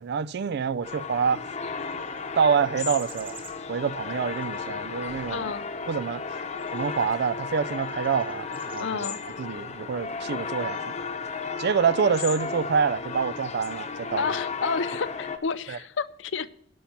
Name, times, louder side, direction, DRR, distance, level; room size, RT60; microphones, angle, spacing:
voice 1, 0.0-1.4 2.4-3.4 3.7-5.5 5.9-6.2 6.7-8.9 9.4-10.9 11.6-14.2 15.7-15.8, right 6 dB, 60° right, 0.4 m, -26 dB
sound 1, 0.8-15.4, left 5 dB, 35° left, 0.9 m, -34 dB
sound 2, 1.8-8.8, right 4 dB, 25° right, 1.8 m, -53 dB
voice 2, 5.3-5.7 8.8-9.2 11.5-11.6 14.1-16.5, left 5 dB, 70° left, 0.6 m, -30 dB
12.0 x 5.7 x 8.5 m
head